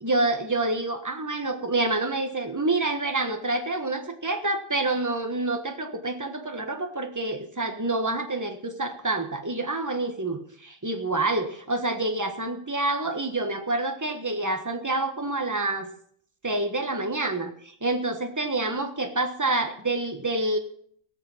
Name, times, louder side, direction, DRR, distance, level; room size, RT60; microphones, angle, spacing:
voice 1, 0.0-15.9 16.4-17.5 17.8-20.6, right 2 dB, 10° right, 6 dB, 1.1 m, -27 dB
18.0 x 6.8 x 7.3 m, 0.64 s
omnidirectional pair, 2.1 m